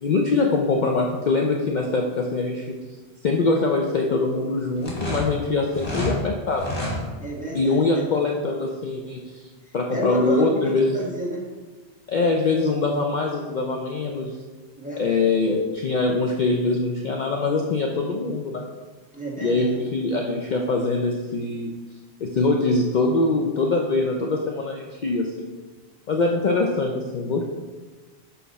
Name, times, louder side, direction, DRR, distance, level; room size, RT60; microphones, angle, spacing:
voice 1, 0.0-2.8 3.2-6.7 7.5-9.4 9.7-10.8 12.1-14.4 15.0-18.6 19.4-21.7 22.2-25.5 26.1-27.4, left 3 dB, 50° left, 1 dB, 0.6 m, -23 dB
sound 1, 4.8-6.1 6.5-7.0, equal, 85° left, 2.0 m, -28 dB
voice 2, 7.2-8.2 9.7-11.4 14.8-15.3 19.1-19.8, right 1 dB, 5° right, -4 dB, 1.4 m, -31 dB
5.9 x 5.8 x 4.1 m, 1.4 s
omnidirectional pair, 1.1 m